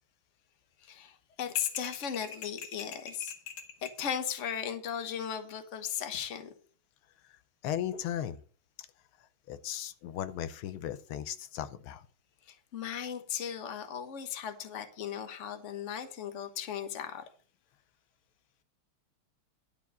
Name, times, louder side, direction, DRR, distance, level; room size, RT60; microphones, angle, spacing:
voice 1, 0.8-3.3 3.8-6.5 12.5-17.2, left 8 dB, 40° left, 8 dB, 1.3 m, -37 dB
sound 1, 1.6-4.0, left 6 dB, 60° left, 1.8 m, -44 dB
voice 2, 7.6-8.4 9.5-12.0, left 10 dB, 80° left, 11 dB, 1.5 m, -36 dB
12.0 x 4.6 x 7.0 m, 0.42 s
omnidirectional pair, 2.3 m